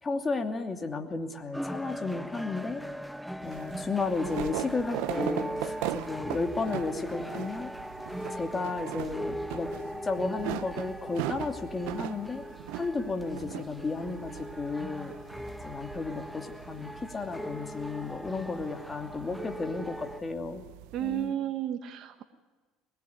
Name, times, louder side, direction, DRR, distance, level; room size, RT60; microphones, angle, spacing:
voice 1, 0.0-2.8 3.4-7.7 8.3-9.7 10.0-12.5 12.7-15.1 15.6-20.7 21.0-21.4, left 3 dB, 20° left, 5 dB, 2.7 m, -33 dB
sound 1, 1.5-20.2, equal, ahead, 0.9 m, -39 dB
sound 2, 3.4-21.3, right 17 dB, 80° right, 0.9 m, -40 dB
voice 2, 20.9-22.2, right 11 dB, 50° right, 6 dB, 1.7 m, -32 dB
22.5 x 21.0 x 9.6 m, 1.3 s
cardioid pair, 120°, 0 cm